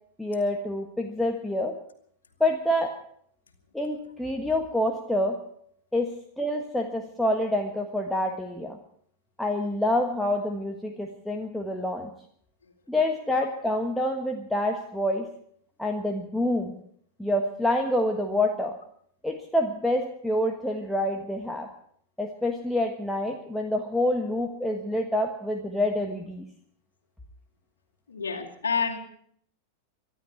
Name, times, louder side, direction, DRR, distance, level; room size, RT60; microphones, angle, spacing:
voice 1, 0.2-1.8 2.4-3.0 3.7-5.4 5.9-6.1 6.4-8.8 9.4-12.1 12.9-15.3 15.8-16.7 17.2-18.8 19.2-21.7 22.2-26.4, left 1 dB, 5° left, 3 dB, 1.3 m, -27 dB
voice 2, 28.1-29.0, left 5 dB, 70° left, 2 dB, 2.4 m, -28 dB
24.0 x 12.5 x 4.6 m, 0.64 s
figure-of-eight pair, 90°, 0 cm